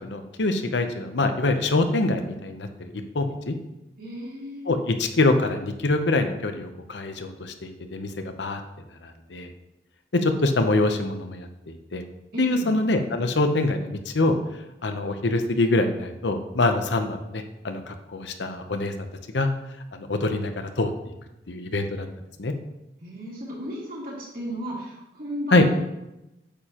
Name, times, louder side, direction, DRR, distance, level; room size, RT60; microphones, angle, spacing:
voice 1, 0.0-3.5 4.7-8.6 9.0-9.5 10.1-12.0 12.4-14.4 14.8-18.9 19.3-19.5 19.9-20.9 21.5-22.1 22.4-22.5 25.5-25.6, left 2 dB, 75° left, 6 dB, 0.8 m, -24 dB
voice 2, 4.0-4.8 12.3-12.7 23.0-25.8, equal, 50° right, -6 dB, 2.7 m, -34 dB
8.5 x 6.9 x 3.0 m, 0.92 s
head